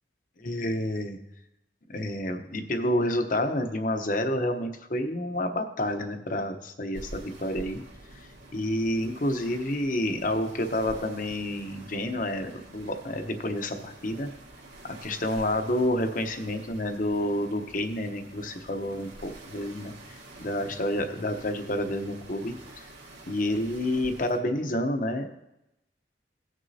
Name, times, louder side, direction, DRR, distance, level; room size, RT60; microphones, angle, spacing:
voice 1, 0.4-1.2 1.9-7.8 8.5-14.3 14.8-22.6 23.3-25.3, left 1 dB, 45° left, 6 dB, 0.9 m, -29 dB
sound 1, 6.9-24.4, right 1 dB, 80° right, 2.1 m, -48 dB
18.0 x 6.3 x 2.8 m, 0.90 s
head